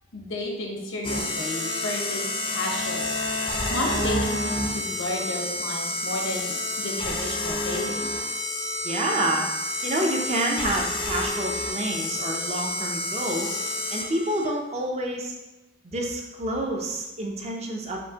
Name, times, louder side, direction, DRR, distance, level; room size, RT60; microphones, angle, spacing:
voice 1, 0.1-3.1 3.4-8.1, left 1 dB, 80° left, 1 dB, 0.9 m, -32 dB
sound 1, 1.0-14.5, left 2 dB, 25° left, 0.5 m, -29 dB
voice 2, 8.8-9.5 9.8-15.3 15.8-18.0, right 1 dB, 30° right, 1 dB, 0.5 m, -28 dB
5.2 x 2.8 x 2.8 m, 1.0 s
head